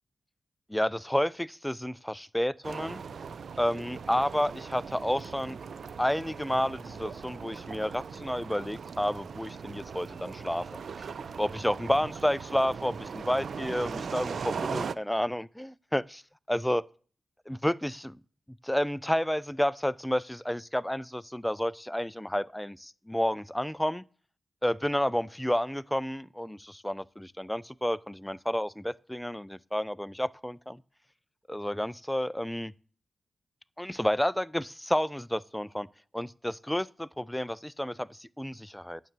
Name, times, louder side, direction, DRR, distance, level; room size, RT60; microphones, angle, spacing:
voice 1, 0.7-3.0 3.6-5.6 6.0-11.1 11.4-16.2 16.5-16.8 17.5-18.2 18.6-24.0 24.6-30.8 31.5-32.7 33.8-35.9 36.1-39.0, equal, 5° left, 0.4 m, -30 dB
sound 1, 2.6-14.9, right 6 dB, 75° right, 0.5 m, -39 dB
9.3 x 6.7 x 7.5 m
cardioid pair, 70°, 0 cm